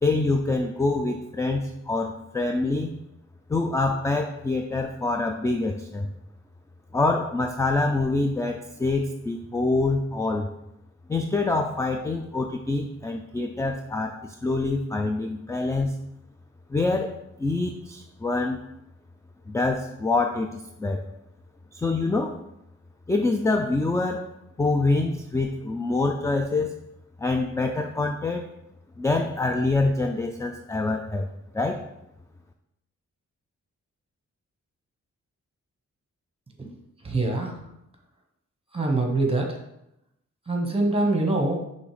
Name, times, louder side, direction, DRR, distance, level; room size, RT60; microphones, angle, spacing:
voice 1, 0.0-2.9 3.5-6.1 6.9-10.5 11.1-16.0 16.7-18.6 19.5-21.0 21.7-22.4 23.1-24.3 24.6-26.7 27.2-28.5 29.0-31.3 31.5-31.8, left 3 dB, 10° left, 4 dB, 0.4 m, -25 dB
voice 2, 37.0-37.6 38.7-39.6 40.5-41.6, right 2 dB, 20° right, 2 dB, 1.2 m, -24 dB
6.1 x 3.2 x 5.0 m, 0.84 s
wide cardioid pair, 105°, 29 cm